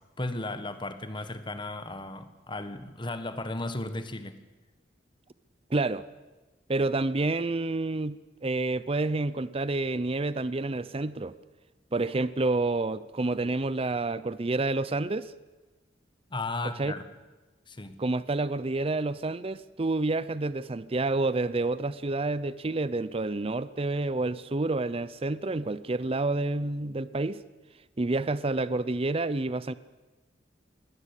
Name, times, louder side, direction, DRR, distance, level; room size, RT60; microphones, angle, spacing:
voice 1, 0.2-4.4 16.3-17.0 17.7-18.0, left 2 dB, 25° left, 10 dB, 1.5 m, -35 dB
voice 2, 5.7-6.0 6.7-11.3 11.9-15.3 16.8-16.9 18.0-27.4 28.0-29.7, right 2 dB, 30° right, 16 dB, 0.6 m, -29 dB
22.5 x 17.5 x 8.3 m, 1.2 s
head